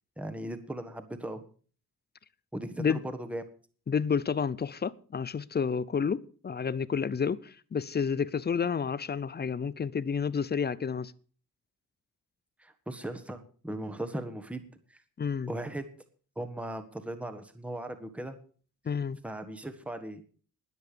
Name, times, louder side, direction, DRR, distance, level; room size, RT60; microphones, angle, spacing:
voice 1, 0.2-1.4 2.5-3.4 12.6-14.6 14.9-15.0 15.5-15.8 16.4-18.4 19.2-20.2, right 1 dB, 5° right, 1.4 m, -38 dB
voice 2, 3.9-11.1 15.2-15.5 18.9-19.2, left 6 dB, 30° left, 0.6 m, -30 dB
20.5 x 7.9 x 5.1 m
wide cardioid pair, 150°, 35 cm